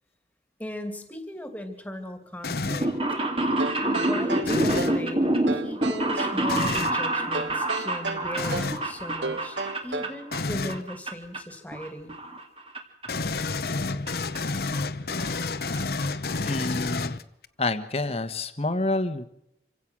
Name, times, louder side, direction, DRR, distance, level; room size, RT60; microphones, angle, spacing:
voice 1, 0.6-2.9 3.9-5.3 5.5-9.6 9.8-12.2, equal, 10° left, 6 dB, 2.4 m, -38 dB
sound 1, 2.4-3.0 4.4-5.0 6.5-7.0 8.4-8.9 10.3-10.8 13.1-17.5, left 3 dB, 55° left, 0.9 m, -30 dB
sound 2, 2.7-10.4 10.7-11.4 11.7-12.8 13.0-13.1 14.1-14.2 14.3-14.4 14.7-14.8 15.1-15.4 15.8-16.1, right 1 dB, 30° right, 2.4 m, -27 dB
sound 3, 3.6-5.1 5.5-6.4 7.3-8.8 9.2-10.2, right 2 dB, 85° right, 1.3 m, -33 dB
voice 2, 16.4-17.2 17.6-19.2, left 2 dB, 35° left, 9 dB, 1.3 m, -28 dB
26.5 x 16.0 x 6.2 m, 0.82 s
head